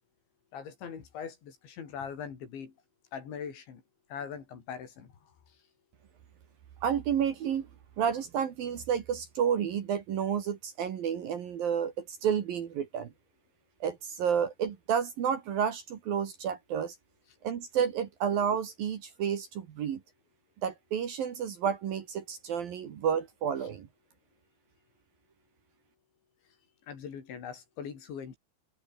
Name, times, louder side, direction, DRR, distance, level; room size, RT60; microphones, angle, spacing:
voice 1, 0.5-2.7 3.1-3.8 4.1-5.1 26.9-28.4, left 7 dB, 65° left, 6.4 m, -41 dB
voice 2, 6.8-7.7 8.0-13.1 13.8-16.9 17.4-20.0 20.6-23.9, right 8 dB, 55° right, 3.1 m, -30 dB
omnidirectional pair, 5.6 m